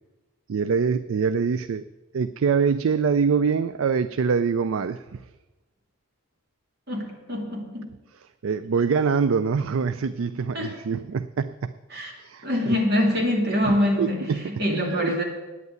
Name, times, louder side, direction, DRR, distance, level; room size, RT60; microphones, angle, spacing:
voice 1, 0.5-1.8 2.1-5.0 8.4-11.7 12.2-12.8 13.7-14.5 14.9-15.2, right 5 dB, 75° right, 13 dB, 0.4 m, -24 dB
voice 2, 6.9-7.9 10.5-10.7 11.9-12.1 12.4-15.2, left 1 dB, 50° right, 0 dB, 2.6 m, -24 dB
9.5 x 8.2 x 9.4 m, 1.1 s
head